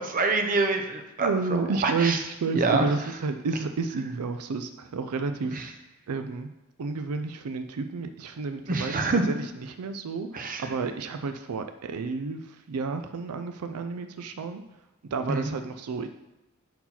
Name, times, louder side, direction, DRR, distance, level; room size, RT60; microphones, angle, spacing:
voice 1, 0.0-2.2 2.5-2.9 5.5-5.6 8.7-9.2 10.3-10.6 15.3-15.5, right 3 dB, 40° right, 5 dB, 0.7 m, -26 dB
voice 2, 1.2-5.7 6.1-6.5 6.8-14.6 15.1-16.1, right 4 dB, 85° right, 8 dB, 0.4 m, -31 dB
5.6 x 4.6 x 5.7 m, 0.97 s
head